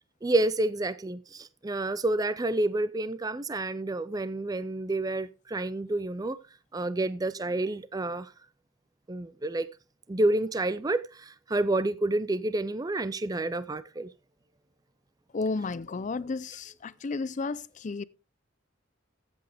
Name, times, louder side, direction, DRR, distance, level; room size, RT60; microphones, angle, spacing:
voice 1, 0.2-6.4 6.7-8.3 9.1-9.7 10.1-14.1, right 2 dB, 20° right, 0.4 m, -29 dB
voice 2, 15.3-18.0, left 3 dB, 40° left, 0.4 m, -32 dB
15.0 x 7.9 x 3.4 m
head